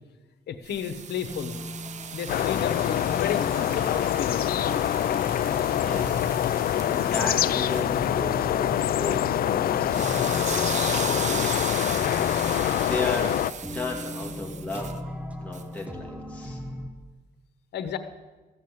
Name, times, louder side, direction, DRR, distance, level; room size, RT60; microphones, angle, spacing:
voice 1, 0.5-1.6 2.1-4.5 17.7-18.0, left 8 dB, 90° left, 10 dB, 1.0 m, -32 dB
sound 1, 0.6-8.2 9.8-15.0 15.5-15.6, right 7 dB, 45° right, 0.7 m, -38 dB
sound 2, 1.3-16.9, equal, 10° right, 1.1 m, -39 dB
sound 3, 2.3-13.5, left 11 dB, 65° left, 0.4 m, -25 dB
voice 2, 5.5-6.2 6.7-12.6 12.8-14.9 15.4-16.6, left 3 dB, 10° left, -2 dB, 2.4 m, -35 dB
14.5 x 7.3 x 8.0 m, 1.2 s
wide cardioid pair, 150°, 17 cm